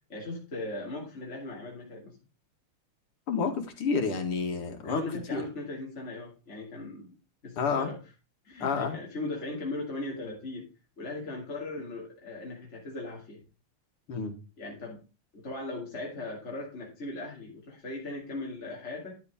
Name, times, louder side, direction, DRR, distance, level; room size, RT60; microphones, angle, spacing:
voice 1, 0.1-2.2 4.8-7.1 7.4-8.0 8.4-10.7 11.0-13.4 14.6-15.0 15.3-19.2, left 2 dB, 30° left, -3 dB, 3.0 m, -38 dB
voice 2, 3.3-5.0 5.3-5.4 7.6-7.9 8.6-9.0 14.1-14.3, left 5 dB, 85° left, 5 dB, 2.7 m, -29 dB
11.5 x 7.6 x 3.6 m, 0.31 s
omnidirectional pair, 2.4 m